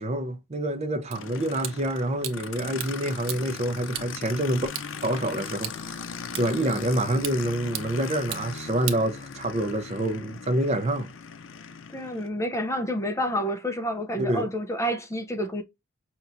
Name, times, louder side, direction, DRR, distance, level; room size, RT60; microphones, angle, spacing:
voice 1, 0.0-4.7 5.0-5.7 6.4-11.1 14.2-14.5, right 1 dB, 35° right, 0.6 m, -27 dB
Aircraft, 1.1-12.3, left 5 dB, 70° left, 0.6 m, -39 dB
sound 1, 1.1-9.7, right 11 dB, 75° right, 0.8 m, -40 dB
voice 2, 11.9-15.6, equal, 15° left, 0.5 m, -29 dB
5.5 x 2.9 x 2.5 m
head